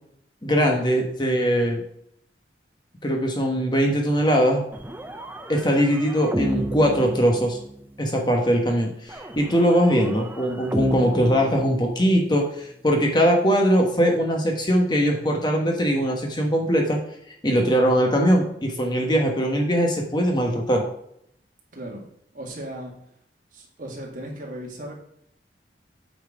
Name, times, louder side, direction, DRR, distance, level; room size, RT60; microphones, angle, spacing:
voice 1, 0.4-1.8 3.0-4.6 5.5-7.6 8.0-17.0 17.4-20.8, equal, 25° left, 1 dB, 1.1 m, -21 dB
sound 1, 4.7-8.0 9.1-12.3, right 1 dB, 10° right, 0.5 m, -31 dB
voice 2, 21.7-22.0 22.3-22.9 23.5-25.0, right 1 dB, 45° right, -2 dB, 2.1 m, -36 dB
8.5 x 4.4 x 4.7 m, 0.72 s
head